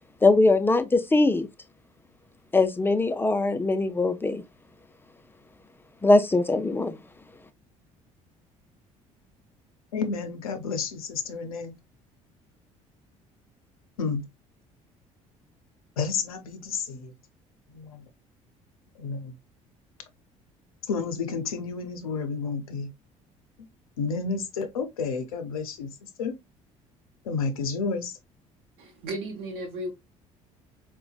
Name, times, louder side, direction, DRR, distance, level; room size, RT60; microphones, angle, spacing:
voice 1, 0.2-1.5 2.5-4.4 6.0-7.0, left 2 dB, 10° left, 0.4 m, -21 dB
voice 2, 9.9-11.7 14.0-14.3 16.0-17.1 17.7-18.1 19.0-19.3 20.8-22.9 24.0-26.4 27.2-28.2, left 5 dB, 80° left, 0.5 m, -31 dB
voice 3, 28.8-29.9, right 1 dB, 65° right, 0.8 m, -34 dB
3.8 x 2.2 x 2.4 m
figure-of-eight pair, 55°, 18 cm